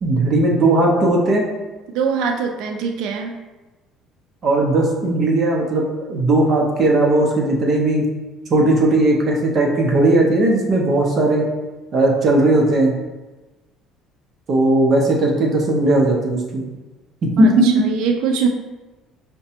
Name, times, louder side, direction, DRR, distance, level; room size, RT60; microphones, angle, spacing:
voice 1, 0.0-1.4 4.4-8.0 8.5-11.5 11.9-12.9 14.5-16.6 17.2-17.8, right 2 dB, 30° right, -1 dB, 0.6 m, -17 dB
voice 2, 1.9-3.4 17.4-18.5, right 6 dB, 65° right, 4 dB, 0.3 m, -23 dB
5.7 x 2.2 x 2.8 m, 1.2 s
cardioid pair, 175°, 0 cm